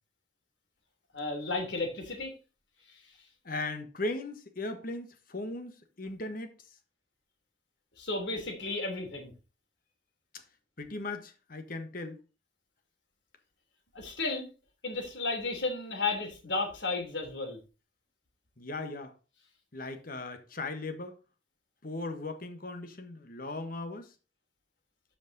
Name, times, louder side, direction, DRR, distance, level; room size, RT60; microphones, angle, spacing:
voice 1, 1.1-2.3 8.0-9.3 13.9-14.5 14.8-17.6, left 3 dB, 70° left, 3.1 m, -33 dB
voice 2, 3.4-6.5 10.8-12.2 18.6-19.1 19.7-21.2 21.8-24.1, left 2 dB, 50° left, 1.3 m, -38 dB
12.5 x 5.2 x 4.0 m
head